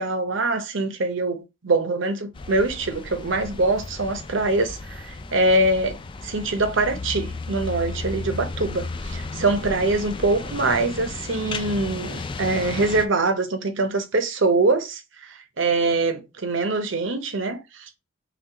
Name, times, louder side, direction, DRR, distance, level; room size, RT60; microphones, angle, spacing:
voice 1, 0.0-18.0, right 2 dB, 65° right, 0.8 m, -24 dB
sound 1, 2.3-13.0, left 3 dB, 25° left, 0.3 m, -34 dB
5.9 x 2.3 x 2.8 m
head